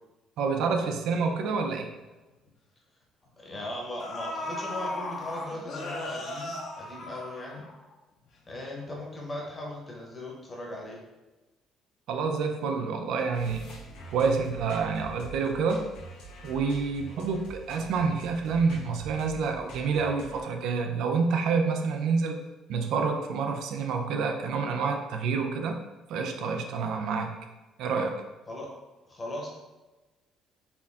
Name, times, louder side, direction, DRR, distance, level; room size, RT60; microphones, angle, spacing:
voice 1, 0.4-1.9 12.1-13.7 14.1-15.9 16.4-22.4 22.7-25.8 26.1-27.3 27.8-28.2, right 5 dB, 70° right, 4 dB, 0.4 m, -28 dB
sound 1, 2.3-2.5 3.5-3.6 4.0-7.9 8.3-8.4, left 2 dB, 50° left, 0.8 m, -36 dB
voice 2, 3.4-7.7 8.5-11.0 28.5-28.7 29.1-29.6, left 1 dB, 20° left, -2 dB, 1.0 m, -38 dB
sound 2, 13.3-20.4, right 2 dB, 85° left, 1.0 m, -45 dB
4.2 x 2.7 x 3.5 m, 1.1 s
cardioid pair, 140°, 0 cm